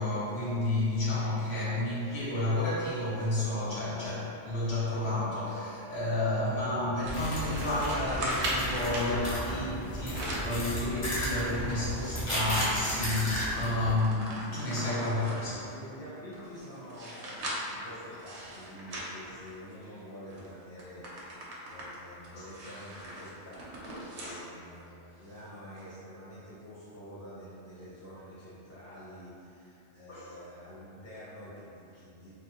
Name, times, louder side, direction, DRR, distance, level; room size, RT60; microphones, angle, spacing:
voice 1, 0.0-15.5 22.3-22.7 24.2-24.4 30.1-30.3, left 2 dB, 70° left, -8 dB, 0.9 m, -31 dB
sound 1, 7.0-9.1 9.8-10.6 11.0-12.8 13.2-13.3 13.6-15.6 16.2-19.9 20.3-20.5 20.8-24.4 24.8-24.9 25.8-25.9, right 1 dB, 80° right, 0.9 m, -39 dB
sound 2, 7.1-13.9, equal, 35° left, 0.5 m, -34 dB
voice 2, 15.1-32.3, equal, 15° left, -11 dB, 0.8 m, -47 dB
3.3 x 2.0 x 2.8 m, 2.7 s
omnidirectional pair, 1.2 m